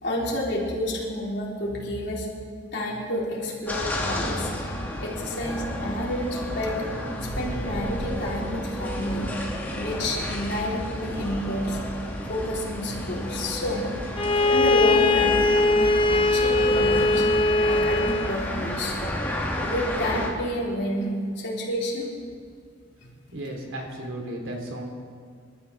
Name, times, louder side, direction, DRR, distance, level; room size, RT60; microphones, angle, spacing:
voice 1, 0.0-2.3 2.7-4.5 5.0-6.9 7.2-9.3 9.8-11.8 12.3-13.9 14.5-17.2 17.7-19.0 19.6-22.1, left 1 dB, 60° left, -4 dB, 3.7 m, -29 dB
sound 1, 3.7-20.3, left 1 dB, 10° left, 2.2 m, -31 dB
Bowed string instrument, 14.2-18.4, left 2 dB, 25° left, 0.6 m, -21 dB
voice 2, 23.3-24.8, right 1 dB, 80° right, 0 dB, 3.3 m, -34 dB
27.5 x 12.5 x 3.5 m, 2.1 s
head